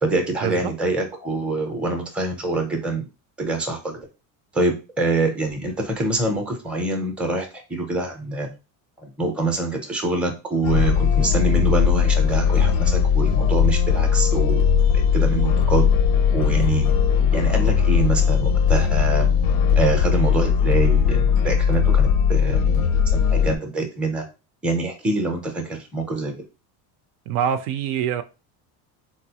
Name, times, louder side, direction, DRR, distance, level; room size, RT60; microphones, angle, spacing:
voice 1, 0.0-3.1 3.4-4.0 4.5-8.5 9.0-14.6 14.9-15.9 16.3-17.0 17.3-19.3 19.8-22.8 23.1-24.2 24.6-26.3, right 2 dB, 5° right, 0.5 m, -25 dB
sound 1, 10.6-23.6, left 7 dB, 80° left, 0.5 m, -19 dB
voice 2, 27.3-28.2, right 9 dB, 65° right, 0.5 m, -24 dB
3.9 x 2.0 x 2.8 m
supercardioid pair, 125°, 44 cm